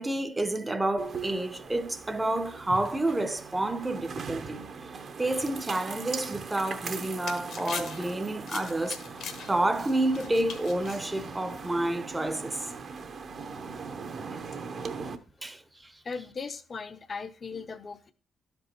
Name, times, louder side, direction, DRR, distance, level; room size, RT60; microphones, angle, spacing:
voice 1, 0.0-4.7 5.2-9.0 9.5-12.7 15.4-15.9, right 1 dB, 15° right, 0.7 m, -29 dB
sound 1, 1.0-15.2, right 5 dB, 50° right, 0.8 m, -40 dB
sound 2, 6.7-11.9, left 6 dB, 70° left, 1.3 m, -42 dB
voice 2, 16.0-18.1, left 5 dB, 40° left, 0.6 m, -38 dB
11.5 x 5.3 x 2.9 m
cardioid pair, 90°, 0 cm